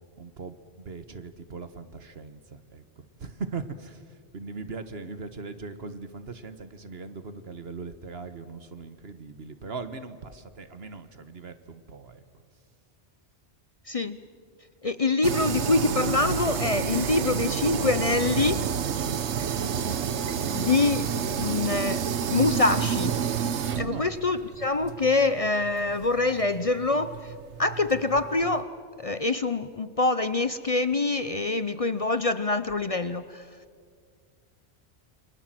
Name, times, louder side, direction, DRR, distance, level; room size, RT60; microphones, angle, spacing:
voice 1, 0.2-12.2 23.9-24.1, right 4 dB, 65° right, 11 dB, 1.6 m, -40 dB
voice 2, 13.9-14.2 14.8-18.7 20.5-21.1 21.4-23.2 23.8-27.3 27.6-33.5, left 3 dB, 35° left, 13 dB, 0.7 m, -25 dB
sound 1, 15.2-28.6, right 7 dB, 90° right, 1.2 m, -30 dB
28.5 x 24.5 x 7.7 m, 2.1 s
omnidirectional pair, 1.1 m